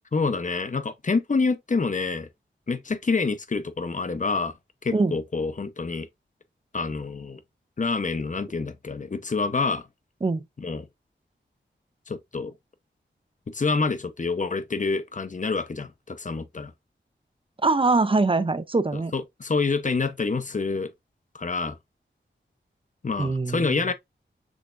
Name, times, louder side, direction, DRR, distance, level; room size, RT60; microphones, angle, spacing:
voice 1, 0.1-2.3 2.7-4.5 4.8-6.1 6.7-7.4 7.8-9.8 10.6-10.9 12.1-12.5 13.5-16.7 18.9-20.9 21.3-21.8 23.0-23.9, left 4 dB, 40° left, 0.7 m, -27 dB
voice 2, 17.6-19.1 23.2-23.8, right 3 dB, 25° right, 0.5 m, -23 dB
6.3 x 3.4 x 2.5 m
wide cardioid pair, 65°, 20 cm